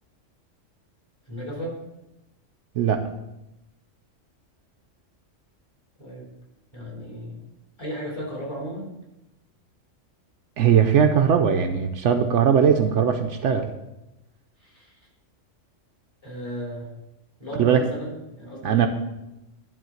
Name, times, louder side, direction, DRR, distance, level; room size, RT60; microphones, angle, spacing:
voice 1, 1.3-1.8 6.0-6.3 6.7-7.3 7.8-9.0 14.6-15.0 16.2-16.9 17.4-18.9, equal, 20° left, -4 dB, 3.7 m, -35 dB
voice 2, 2.8-3.1 10.6-13.7 17.6-17.8 18.6-18.9, right 7 dB, 70° right, 6 dB, 0.9 m, -19 dB
11.0 x 3.8 x 6.3 m, 0.93 s
omnidirectional pair, 1.3 m